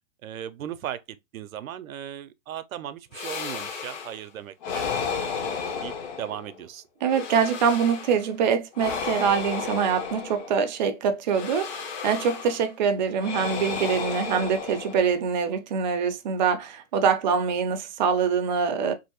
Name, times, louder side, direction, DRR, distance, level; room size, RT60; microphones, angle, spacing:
voice 1, 0.2-4.9 5.4-6.8 13.2-13.3, right 10 dB, 90° right, 0.6 m, -37 dB
sound 1, 3.1-4.2 4.6-6.6 7.0-8.3 8.7-10.7 11.3-12.7 13.2-15.3, left 6 dB, 35° left, 0.7 m, -33 dB
voice 2, 7.0-18.9, right 6 dB, 35° right, 0.4 m, -24 dB
3.0 x 2.7 x 2.8 m
hypercardioid pair, 140°, 40 cm